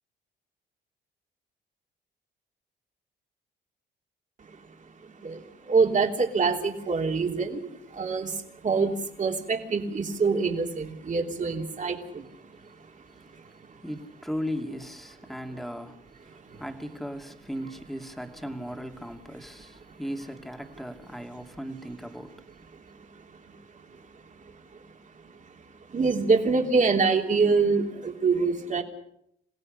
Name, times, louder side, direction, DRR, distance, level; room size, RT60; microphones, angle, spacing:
voice 1, 4.9-13.8 16.3-16.6 19.9-20.0 22.7-24.4 24.7-24.8 25.2-28.8, right 4 dB, 40° right, 3.3 m, -27 dB
voice 2, 13.8-22.5, equal, ahead, 2.6 m, -37 dB
27.5 x 16.5 x 6.6 m
cardioid pair, 90°, 20 cm